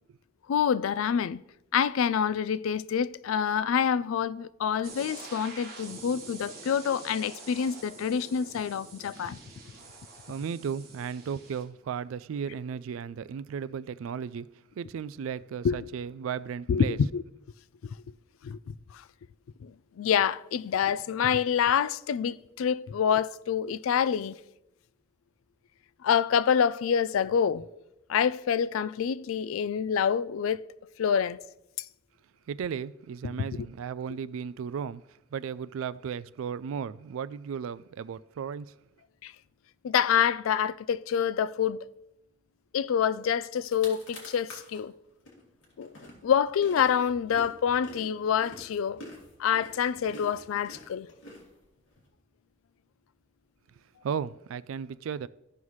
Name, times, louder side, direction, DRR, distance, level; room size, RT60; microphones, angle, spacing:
voice 1, 0.5-1.4 1.7-9.4 15.6-15.8 16.7-17.2 17.8-18.0 18.4-19.0 19.6-24.4 26.0-27.6 28.1-30.6 31.0-31.4 39.2-39.3 39.8-41.9 42.7-44.9 45.8-45.9 46.2-49.0 49.4-51.1, left 8 dB, 85° left, 0.3 m, -27 dB
sound 1, 4.8-11.6, right 3 dB, 50° right, 1.5 m, -46 dB
voice 2, 10.3-14.5 14.8-17.0 32.5-38.7 54.0-55.3, right 7 dB, 85° right, 0.3 m, -35 dB
sound 2, 43.2-43.3 43.5-44.8 45.3-52.0, left 1 dB, 70° left, 2.2 m, -47 dB
14.0 x 5.5 x 3.1 m
head